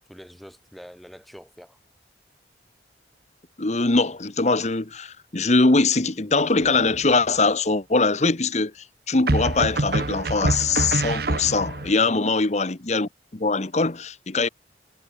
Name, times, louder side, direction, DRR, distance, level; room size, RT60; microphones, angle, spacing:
voice 1, 0.0-1.8 12.0-12.2, equal, ahead, 3.8 m, -45 dB
voice 2, 3.6-8.7 9.1-14.5, left 3 dB, 40° left, 1.1 m, -22 dB
sound 1, 6.6-7.2 9.3-11.9, right 2 dB, 60° right, 1.1 m, -26 dB
head